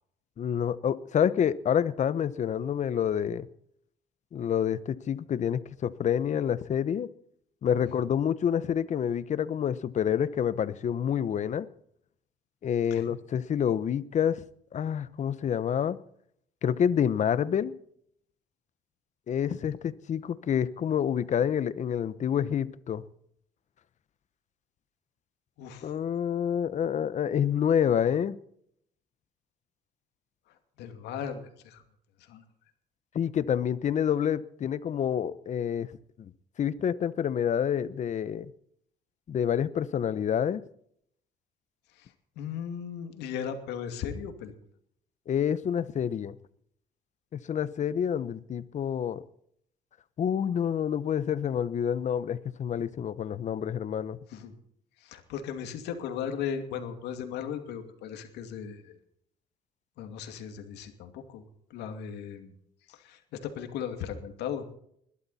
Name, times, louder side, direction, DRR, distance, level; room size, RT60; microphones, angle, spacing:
voice 1, 0.4-3.5 4.3-7.1 7.6-11.7 12.6-14.4 14.7-16.0 16.6-17.7 19.3-23.0 25.8-28.3 33.1-35.9 36.2-36.3 36.6-38.5 39.3-40.6 45.3-46.3 47.3-49.2 50.2-54.2, left 8 dB, 45° left, 16 dB, 0.9 m, -28 dB
voice 2, 25.6-25.9 30.8-31.8 32.3-32.4 42.0-44.5 54.3-54.5 55.0-59.0 60.0-61.4 61.7-62.5 62.9-64.7, left 8 dB, 85° left, 6 dB, 2.6 m, -37 dB
21.0 x 12.5 x 4.3 m, 0.67 s
cardioid pair, 110°, 17 cm